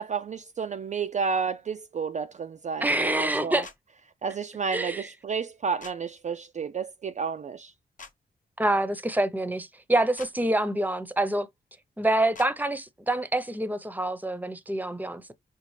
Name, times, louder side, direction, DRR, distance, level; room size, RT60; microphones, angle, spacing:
voice 1, 0.0-3.6 4.2-7.7, right 6 dB, 40° right, 0.4 m, -31 dB
voice 2, 2.8-3.7 4.7-5.1 8.6-11.5 12.0-15.3, right 1 dB, 10° right, 0.7 m, -26 dB
sound 1, 3.6-3.8 5.8-6.0 8.0-8.1 10.2-10.3 12.3-12.5, left 4 dB, 45° left, 0.8 m, -44 dB
5.2 x 2.4 x 3.2 m
cardioid pair, 55°, 18 cm